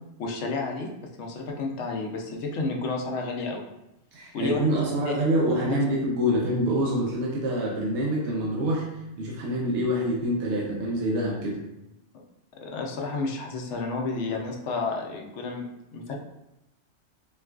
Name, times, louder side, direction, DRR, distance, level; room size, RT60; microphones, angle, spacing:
voice 1, 0.2-0.9 1.2-3.7 4.3-5.1 12.6-16.2, left 3 dB, 85° left, 1 dB, 0.9 m, -31 dB
voice 2, 4.1-8.9 9.2-11.6, equal, 80° right, -3 dB, 1.0 m, -26 dB
4.3 x 2.4 x 2.3 m, 0.91 s
omnidirectional pair, 1.2 m